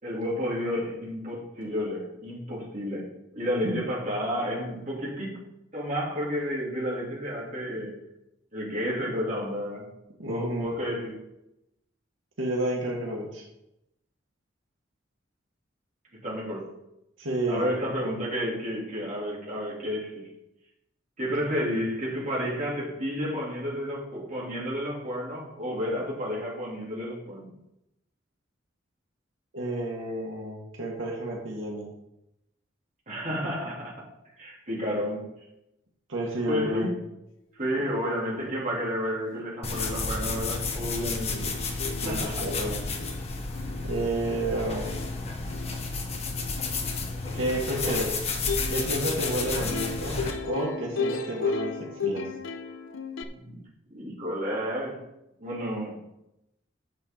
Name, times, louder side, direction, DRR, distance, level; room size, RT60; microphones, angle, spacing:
voice 1, 0.0-5.4 5.7-8.0 8.5-9.9 10.2-11.2 16.1-16.7 17.5-20.3 21.2-27.5 33.1-34.0 34.4-35.3 36.5-36.9 37.5-41.6 42.0-42.4 53.3-53.6 53.9-55.0 55.4-56.0, equal, 40° right, -5 dB, 3.4 m, -31 dB
voice 2, 10.2-10.8 12.4-13.4 17.2-17.7 29.5-31.9 36.1-36.9 42.0-42.8 43.8-45.0 47.3-48.2 48.7-52.3, right 1 dB, 85° right, -2 dB, 1.9 m, -30 dB
Plucked string instrument, 39.4-39.5 39.7-53.2, left 4 dB, 80° left, 0.7 m, -36 dB
sound 1, 39.6-50.3, left 3 dB, 35° left, 1.2 m, -31 dB
10.0 x 7.6 x 3.9 m, 0.86 s
head